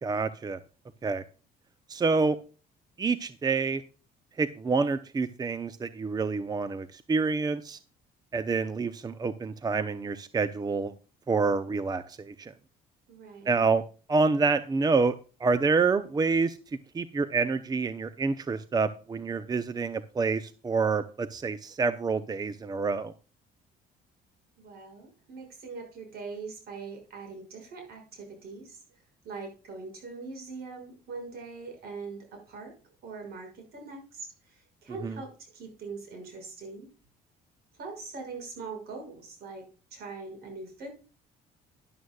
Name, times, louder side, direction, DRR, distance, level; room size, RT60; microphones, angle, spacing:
voice 1, 0.0-0.6 1.0-1.2 1.9-2.4 3.0-3.8 4.4-7.8 8.3-10.9 11.3-12.5 13.5-13.8 14.1-15.1 15.4-16.6 16.9-23.1 35.0-35.2, right 4 dB, 25° right, 13 dB, 0.7 m, -27 dB
voice 2, 13.1-13.6 24.6-28.8 29.2-32.7 33.0-36.9 37.7-40.9, right 4 dB, 65° right, 4 dB, 6.0 m, -42 dB
12.5 x 11.0 x 2.3 m, 0.35 s
cardioid pair, 110°, 17 cm